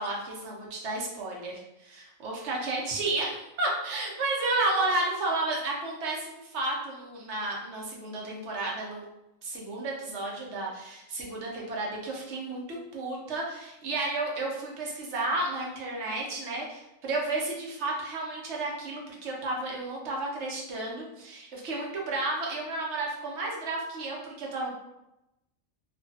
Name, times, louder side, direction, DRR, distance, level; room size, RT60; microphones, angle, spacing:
voice 1, 0.0-9.0 9.4-24.8, right 2 dB, 65° right, -2 dB, 0.9 m, -32 dB
3.1 x 2.2 x 2.6 m, 0.90 s
omnidirectional pair, 1.4 m